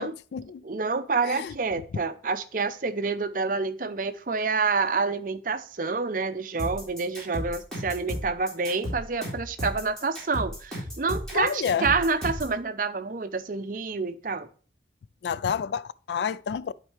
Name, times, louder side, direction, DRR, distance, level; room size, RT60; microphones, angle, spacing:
voice 1, 0.0-0.6 1.2-1.5 11.3-11.9 15.2-16.7, left 7 dB, 75° left, 0.3 m, -29 dB
voice 2, 0.6-14.5, right 4 dB, 50° right, 0.6 m, -28 dB
sound 1, 6.6-12.6, equal, 5° left, 3.7 m, -34 dB
11.0 x 4.5 x 3.1 m
head